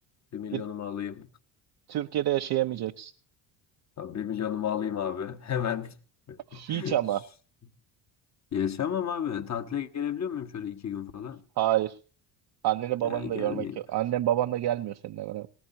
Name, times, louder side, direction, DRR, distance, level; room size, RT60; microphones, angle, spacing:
voice 1, 0.3-1.3 4.0-6.0 6.3-7.0 8.5-11.4 13.0-13.8, left 9 dB, 35° left, 1.3 m, -32 dB
voice 2, 1.9-3.1 6.5-7.2 11.6-12.0 12.6-15.5, right 13 dB, 55° right, 0.8 m, -28 dB
19.0 x 18.5 x 2.8 m
cardioid pair, 110°, 46 cm